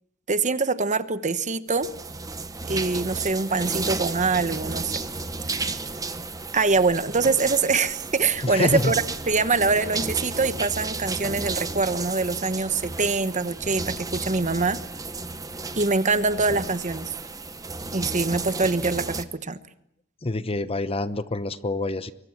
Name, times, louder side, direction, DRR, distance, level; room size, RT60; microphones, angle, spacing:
voice 1, 0.3-1.9 2.6-5.0 5.5-5.7 6.5-9.0 9.3-14.8 15.8-17.1 17.9-19.6, right 4 dB, 35° right, 12 dB, 1.1 m, -24 dB
sound 1, 1.7-19.2, right 3 dB, 15° right, 1.2 m, -33 dB
voice 2, 8.4-8.9 20.2-22.1, left 2 dB, 30° left, 13 dB, 0.9 m, -26 dB
26.0 x 23.5 x 7.3 m, 0.76 s
head